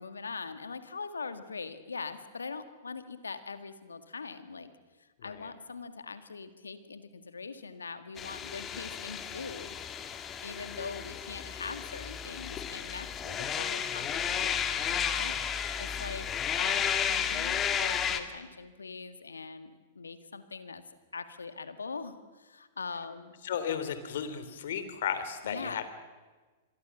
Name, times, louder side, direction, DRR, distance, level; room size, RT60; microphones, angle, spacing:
voice 1, 0.0-4.7 5.0-15.4 15.8-16.3 16.6-20.8 21.1-23.3 25.4-25.8, left 4 dB, 85° left, 10 dB, 1.9 m, -42 dB
voice 2, 5.2-5.5 23.4-25.8, left 8 dB, 65° left, 11 dB, 3.2 m, -34 dB
sound 1, 8.2-18.2, left 8 dB, 25° left, 2.2 m, -33 dB
27.5 x 22.0 x 7.3 m, 1.3 s
hypercardioid pair, 105°, 0 cm